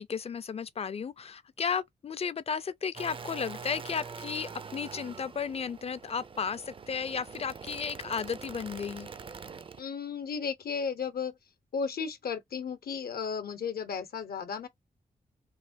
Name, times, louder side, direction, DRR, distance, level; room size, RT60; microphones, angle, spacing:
voice 1, 0.0-9.1, left 6 dB, 40° left, 0.4 m, -34 dB
sound 1, 2.9-9.8, right 5 dB, 35° right, 0.4 m, -44 dB
voice 2, 9.8-11.3 11.7-14.7, left 6 dB, 75° left, 0.7 m, -34 dB
3.2 x 2.2 x 2.5 m
cardioid pair, 65°, 16 cm